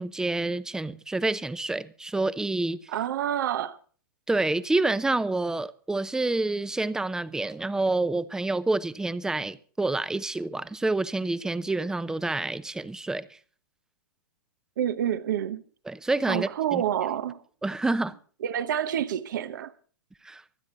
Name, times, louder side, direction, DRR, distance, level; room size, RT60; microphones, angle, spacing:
voice 1, 0.0-2.8 4.3-13.3 15.9-16.8 17.6-18.1 20.2-20.4, right 2 dB, 5° right, 0.7 m, -28 dB
voice 2, 2.9-3.8 14.8-15.6 16.3-17.4 18.4-19.7, right 10 dB, 60° right, 1.0 m, -28 dB
25.0 x 9.6 x 4.0 m
hypercardioid pair, 115°, 11 cm